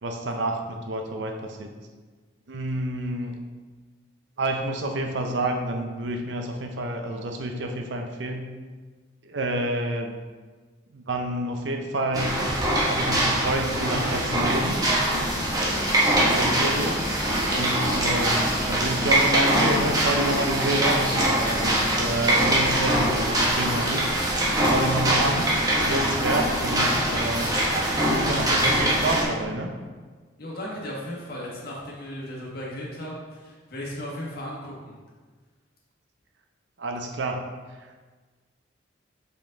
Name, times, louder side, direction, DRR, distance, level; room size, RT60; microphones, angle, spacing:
voice 1, 0.0-1.7 2.5-3.4 4.4-8.5 9.2-10.2 10.9-12.4 12.8-14.8 16.3-17.0 17.5-24.1 24.7-27.5 28.1-29.7 36.8-37.4 37.8-37.9, right 1 dB, 65° right, 4 dB, 0.6 m, -28 dB
sound 1, 12.1-29.2, right 1 dB, 20° right, 1.0 m, -23 dB
voice 2, 30.4-34.9, equal, 50° left, -4 dB, 1.6 m, -36 dB
5.4 x 5.1 x 3.8 m, 1.4 s
head